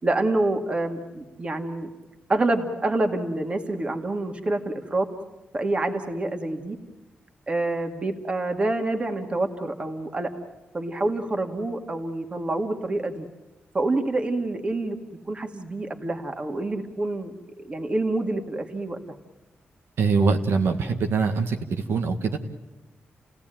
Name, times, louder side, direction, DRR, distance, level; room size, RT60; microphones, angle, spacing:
voice 1, 0.0-1.9 2.3-5.1 5.5-6.8 7.5-10.3 10.7-13.3 13.7-15.0 15.3-19.0, right 2 dB, 25° right, 5 dB, 2.2 m, -27 dB
voice 2, 20.0-22.4, right 4 dB, 75° right, 4 dB, 1.9 m, -23 dB
30.0 x 17.5 x 9.2 m, 1.0 s
wide cardioid pair, 140°, 4 cm